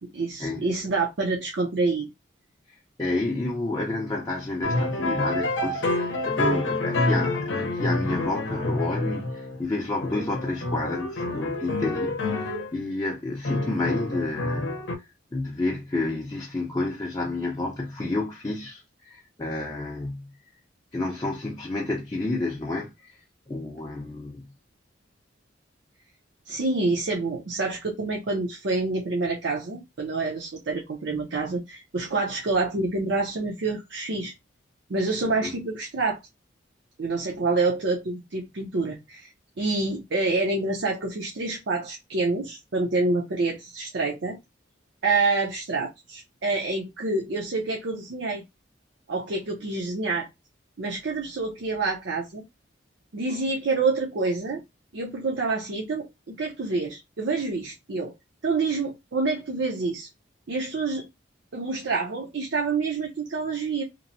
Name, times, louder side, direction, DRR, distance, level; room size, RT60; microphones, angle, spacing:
voice 1, 0.1-2.1 26.5-34.3 34.9-36.2 37.0-39.3 39.6-44.4 45.0-48.4 49.1-50.3 50.8-52.4 53.1-54.6 54.9-58.1 58.4-60.1 60.5-61.1 61.5-63.8, right 3 dB, 70° right, 0.6 m, -27 dB
voice 2, 3.0-14.9 15.3-20.3 20.9-22.9 23.5-24.5 35.4-35.5, left 2 dB, 20° left, 0.5 m, -30 dB
sound 1, 4.6-9.7 10.0-12.7 13.4-14.9, left 2 dB, 75° left, 0.6 m, -28 dB
3.0 x 2.1 x 2.5 m
head